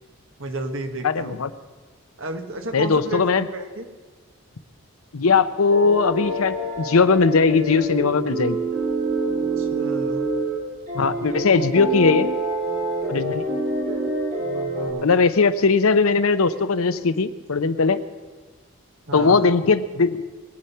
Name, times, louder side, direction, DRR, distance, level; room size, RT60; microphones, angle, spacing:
voice 1, 0.4-1.4 2.2-3.9 9.6-10.3 14.4-15.1 19.1-19.5, right 1 dB, 60° right, 6 dB, 1.4 m, -32 dB
voice 2, 1.0-1.5 2.7-3.4 5.1-8.6 10.9-12.3 13.1-13.4 15.0-18.0 19.1-20.2, left 4 dB, 80° left, 12 dB, 0.7 m, -19 dB
sound 1, 5.7-10.6 10.9-14.9, right 2 dB, 35° right, 3.7 m, -26 dB
22.5 x 8.6 x 5.7 m, 1.3 s
head